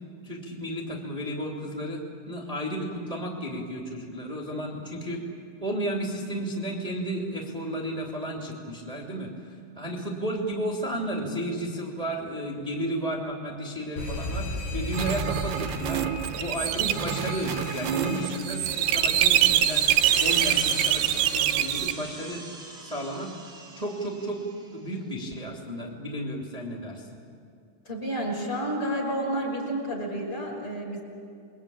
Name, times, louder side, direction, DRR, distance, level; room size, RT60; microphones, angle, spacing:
voice 1, 0.2-5.2 5.6-16.0 16.4-19.9 20.1-22.4 22.8-23.3 23.7-24.4 24.7-27.2, right 1 dB, 15° right, -3 dB, 1.2 m, -33 dB
Alarm, 14.0-21.7, left 2 dB, 75° left, 7.2 m, -37 dB
sound 1, 14.9-21.9, right 11 dB, 80° right, 2.3 m, -25 dB
sound 2, 17.8-24.6, right 3 dB, 35° right, 0.8 m, -40 dB
voice 2, 27.8-31.0, right 1 dB, 25° left, -1 dB, 6.2 m, -30 dB
28.5 x 22.5 x 8.7 m, 2.4 s
omnidirectional pair, 5.8 m